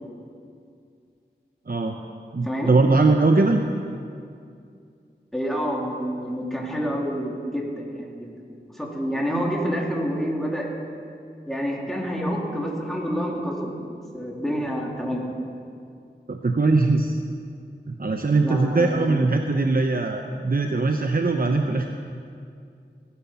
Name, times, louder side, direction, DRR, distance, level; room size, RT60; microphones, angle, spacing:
voice 1, 1.7-2.0 2.3-3.6 16.3-17.2 17.9-21.9, right 3 dB, 50° right, 4 dB, 0.8 m, -21 dB
voice 2, 5.3-8.3 8.8-10.7 11.5-13.7 14.1-15.3 18.4-19.1, equal, ahead, -2 dB, 2.9 m, -28 dB
18.5 x 10.0 x 5.7 m, 2.4 s
wide cardioid pair, 45°, 19 cm